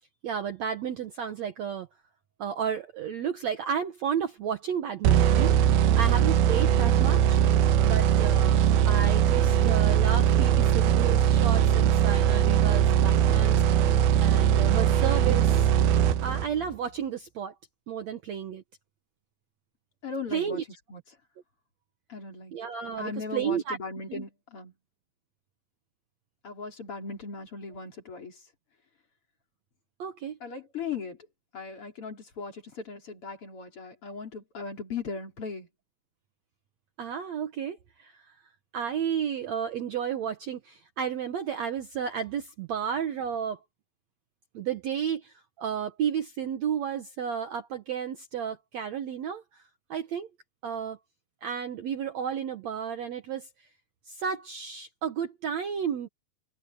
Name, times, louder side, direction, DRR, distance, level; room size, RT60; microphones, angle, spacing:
voice 1, 0.2-1.9 2.4-7.4 7.8-13.9 14.2-15.7 16.2-17.5 17.9-18.6 20.3-20.6 22.5-23.8 24.1-24.3 30.0-30.4 37.0-38.4 38.7-43.6 44.5-49.6 49.9-50.3 50.6-51.0 51.4-53.5 54.1-56.1, right 8 dB, 65° right, 1.9 m, -32 dB
sound 1, 5.0-16.7, right 10 dB, 85° right, 3.0 m, -21 dB
voice 2, 20.0-20.6 20.9-21.0 22.1-22.6 23.0-24.7 26.4-28.4 30.4-31.2 31.5-35.7, left 4 dB, 35° left, 4.4 m, -38 dB
omnidirectional pair, 4.3 m